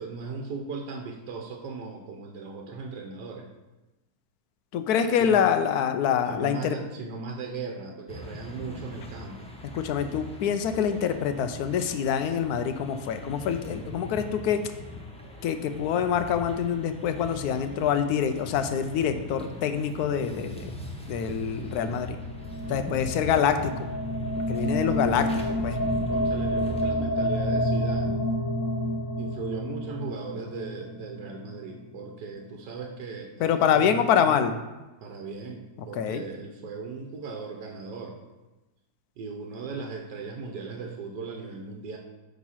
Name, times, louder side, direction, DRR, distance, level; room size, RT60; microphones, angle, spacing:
voice 1, 0.0-3.5 5.2-5.4 6.3-9.5 26.1-28.3 29.2-34.4 35.0-38.2 39.2-42.0, right 4 dB, 80° right, 2 dB, 1.4 m, -38 dB
voice 2, 4.7-6.8 9.7-14.6 15.4-20.7 21.1-22.2 22.7-23.9 24.3-25.8 33.4-34.5 35.9-36.2, left 8 dB, 75° left, 8 dB, 1.1 m, -25 dB
sound 1, 8.1-26.8, left 1 dB, 5° left, 0.4 m, -42 dB
sound 2, 20.5-32.3, equal, 55° left, 1.2 m, -30 dB
8.8 x 3.6 x 5.7 m, 1.1 s
omnidirectional pair, 1.8 m